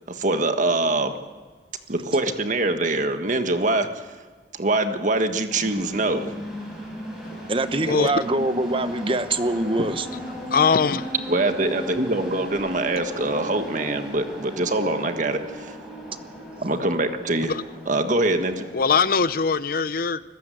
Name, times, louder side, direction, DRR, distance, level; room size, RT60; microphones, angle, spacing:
voice 1, 0.1-1.1 1.9-3.9 4.6-6.3 11.3-15.7 16.6-17.5 17.9-18.6, right 2 dB, 45° right, 1.5 m, -24 dB
sound 1, 5.5-19.3, equal, ahead, 6.8 m, -37 dB
voice 2, 7.5-10.1, right 2 dB, 30° right, 0.9 m, -24 dB
voice 3, 10.5-11.1 17.5-17.6 18.7-20.2, left 5 dB, 55° left, 0.6 m, -21 dB
25.0 x 15.0 x 7.8 m
head